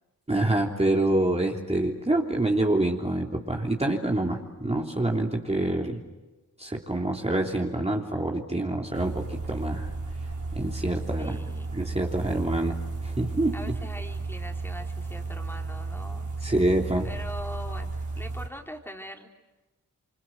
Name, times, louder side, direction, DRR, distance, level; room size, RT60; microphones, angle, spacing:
voice 1, 0.3-6.0 6.6-9.9 10.5-11.4 11.7-13.7 16.4-17.1, right 1 dB, 20° right, 0 dB, 3.3 m, -26 dB
sound 1, 8.9-18.5, right 3 dB, 55° right, 5.0 m, -34 dB
voice 2, 11.2-11.7 13.5-16.5 17.0-19.3, equal, 5° left, 2 dB, 3.9 m, -42 dB
27.5 x 25.0 x 7.9 m, 1.1 s
supercardioid pair, 40°, 35 cm